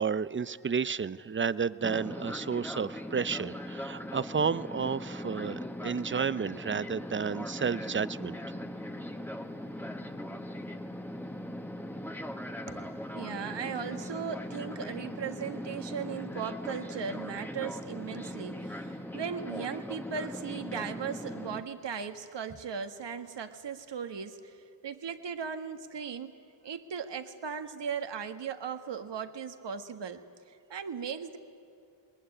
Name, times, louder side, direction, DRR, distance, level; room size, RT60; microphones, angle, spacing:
voice 1, 0.0-8.4, right 6 dB, 25° right, 17 dB, 0.6 m, -31 dB
Fixed-wing aircraft airplane, 1.8-21.6, left 1 dB, 5° left, 1.5 m, -40 dB
voice 2, 12.7-26.3 26.6-31.4, right 7 dB, 60° right, 8 dB, 1.6 m, -38 dB
20.0 x 19.0 x 10.0 m, 2.4 s
supercardioid pair, 50°, 48 cm